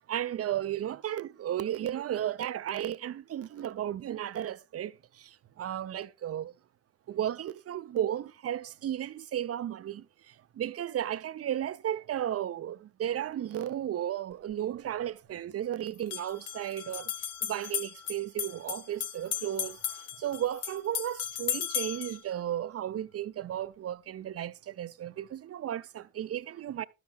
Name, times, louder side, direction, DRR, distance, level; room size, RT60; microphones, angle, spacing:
voice 1, 0.0-6.5 7.1-17.1 17.4-26.8, right 11 dB, 35° right, 0.6 m, -34 dB
sound 1, 14.3-14.4 15.9-22.2, left 9 dB, 85° left, 0.8 m, -36 dB
12.0 x 10.5 x 2.4 m
figure-of-eight pair, 45°, 41 cm